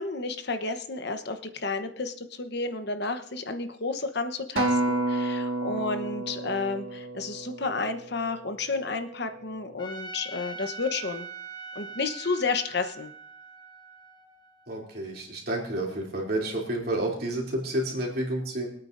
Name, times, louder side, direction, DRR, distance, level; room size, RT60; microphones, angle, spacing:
voice 1, 0.0-11.3 11.7-13.1, left 3 dB, 55° left, 8 dB, 1.0 m, -31 dB
Acoustic guitar, 4.6-9.0 9.6-9.8, right 2 dB, 90° right, 1.4 m, -30 dB
Trumpet, 9.8-15.0, right 4 dB, 20° left, 1.2 m, -43 dB
voice 2, 14.7-18.7, right 1 dB, 50° right, -2 dB, 3.0 m, -30 dB
23.5 x 9.0 x 2.6 m, 0.66 s
head